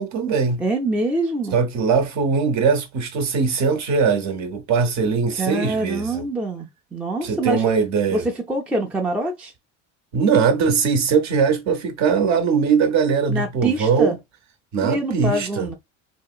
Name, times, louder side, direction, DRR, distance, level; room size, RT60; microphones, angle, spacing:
voice 1, 0.0-0.6 1.5-6.2 7.2-8.3 10.1-14.2 14.7-15.7, right 5 dB, 50° right, 0.8 m, -20 dB
voice 2, 0.6-1.6 5.4-7.6 8.1-9.5 13.3-14.2 14.8-15.7, right 2 dB, 5° right, 0.4 m, -25 dB
2.8 x 2.8 x 2.3 m
supercardioid pair, 110°, 36 cm